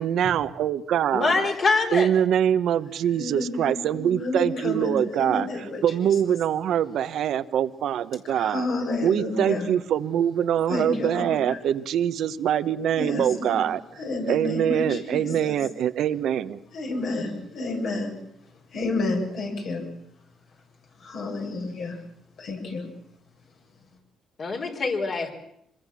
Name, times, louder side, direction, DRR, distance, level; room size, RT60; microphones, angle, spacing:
voice 1, 0.0-1.5 1.9-5.5 5.8-8.7 9.0-13.8 14.3-16.6, right 9 dB, 75° right, 13 dB, 1.1 m, -24 dB
voice 2, 1.1-2.1 24.4-25.3, left 4 dB, 50° left, 2 dB, 4.6 m, -24 dB
voice 3, 3.2-6.1 8.2-9.7 10.7-11.6 12.9-13.6 14.0-15.6 16.7-18.1 18.7-19.8 21.0-22.0 22.4-22.9, left 2 dB, 70° left, 0 dB, 7.5 m, -30 dB
25.5 x 22.0 x 7.5 m, 0.74 s
cardioid pair, 90°, 0 cm